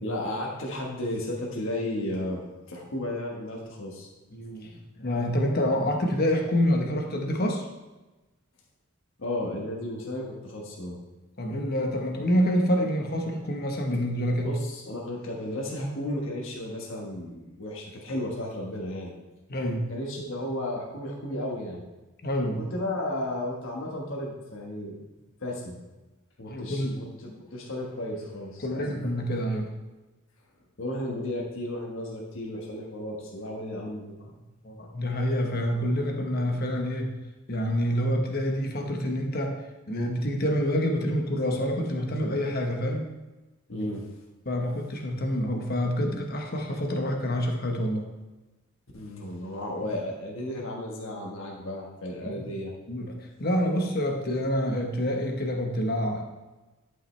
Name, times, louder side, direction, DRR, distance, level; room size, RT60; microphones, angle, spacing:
voice 1, 0.0-2.4 2.7-4.1 9.2-11.0 14.4-19.1 19.9-21.8 22.6-25.0 25.4-25.8 26.4-28.8 30.8-34.2 43.7-44.0 48.9-52.7, left 1 dB, 65° left, -2 dB, 1.4 m, -34 dB
voice 2, 4.3-7.6 11.4-14.5 19.5-19.9 22.2-22.6 26.5-26.9 28.6-29.7 34.6-37.2 37.5-39.6 39.9-43.1 43.7-43.9 44.4-48.1 52.2-52.4 52.9-56.2, equal, 45° left, 2 dB, 1.1 m, -27 dB
11.0 x 5.7 x 3.3 m, 1.1 s
head